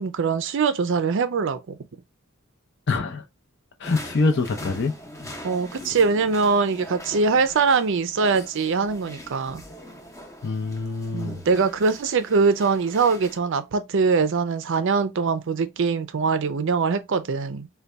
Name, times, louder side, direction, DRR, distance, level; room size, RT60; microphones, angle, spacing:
voice 1, 0.0-1.8 5.4-9.6 11.1-17.7, right 4 dB, 60° right, 0.5 m, -22 dB
voice 2, 2.9-3.3 3.8-4.9 10.4-11.4, left 3 dB, 55° left, 0.6 m, -25 dB
sound 1, 3.8-13.4, left 1 dB, 15° left, 0.7 m, -42 dB
4.0 x 2.3 x 3.4 m
head